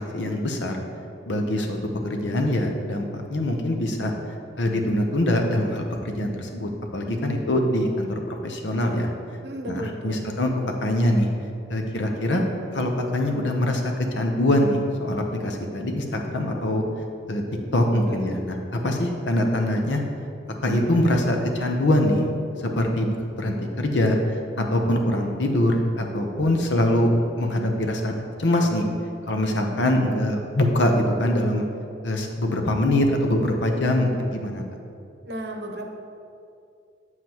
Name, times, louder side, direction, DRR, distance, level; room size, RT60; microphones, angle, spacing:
voice 1, 0.1-0.8 1.3-1.8 2.1-4.1 4.6-9.1 9.7-10.5 10.8-11.3 11.7-12.4 12.7-13.8 14.1-16.8 17.3-17.4 17.7-18.6 18.8-20.0 20.6-22.3 22.8-24.2 24.6-27.1 27.4-28.8 29.3-31.6 32.0-34.6, left 1 dB, 85° left, 3 dB, 0.8 m, -23 dB
voice 2, 9.4-10.2 18.1-18.4 35.2-35.9, equal, 65° right, 3 dB, 0.8 m, -34 dB
7.9 x 7.4 x 3.0 m, 2.5 s
head